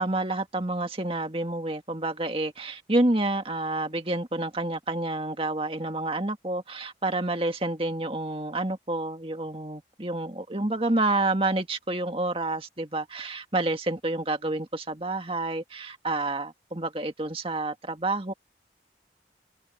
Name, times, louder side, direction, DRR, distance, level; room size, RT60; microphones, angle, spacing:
voice 1, 0.0-18.3, right 2 dB, 30° right, 2.0 m, -29 dB
open air
head